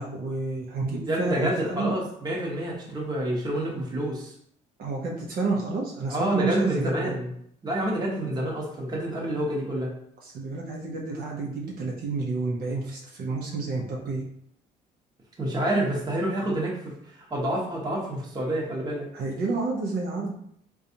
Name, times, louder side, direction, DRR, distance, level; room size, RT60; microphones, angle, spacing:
voice 1, 0.0-1.9 4.8-7.1 10.2-14.2 19.1-20.3, right 3 dB, 60° right, -2 dB, 0.7 m, -30 dB
voice 2, 1.0-4.3 6.1-7.3 7.6-9.9 15.4-19.1, right 1 dB, 25° right, -3 dB, 1.0 m, -28 dB
3.9 x 2.3 x 2.7 m, 0.70 s
cardioid pair, 110°, 17 cm